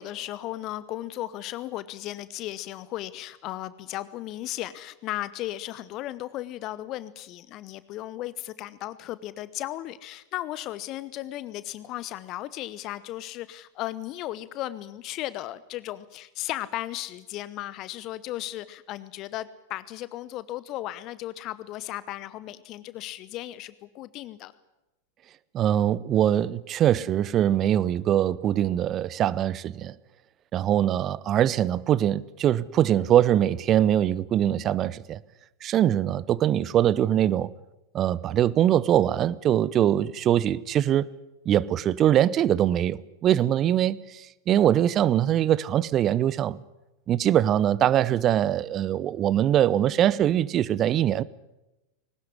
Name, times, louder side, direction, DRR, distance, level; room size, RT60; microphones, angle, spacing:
voice 1, 0.0-24.5, left 15 dB, 35° left, 0.9 m, -35 dB
voice 2, 25.5-29.9 30.5-35.2 35.6-37.5 37.9-41.1 41.5-46.6 47.1-51.2, right 11 dB, 30° right, 0.7 m, -22 dB
21.0 x 19.5 x 9.8 m
figure-of-eight pair, 90°, 0 cm